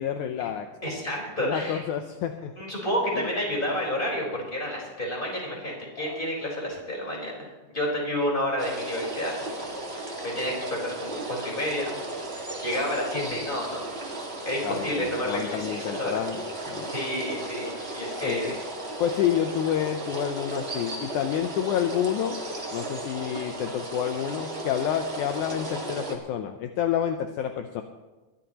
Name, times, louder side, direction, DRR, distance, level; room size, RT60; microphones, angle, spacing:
voice 1, 0.0-0.7 1.4-2.5 3.1-3.3 6.1-6.2 13.1-13.4 14.6-16.9 18.2-18.6 19.0-22.4 22.7-27.8, left 9 dB, 75° left, 6 dB, 2.0 m, -29 dB
voice 2, 0.8-1.8 2.6-9.6 9.9-12.0 12.3-13.8 14.4-16.2 16.9-18.6, equal, 15° left, -2 dB, 4.4 m, -30 dB
sound 1, 8.6-26.2, right 2 dB, 25° right, 1.6 m, -35 dB
22.0 x 14.5 x 3.0 m, 1.2 s
omnidirectional pair, 3.8 m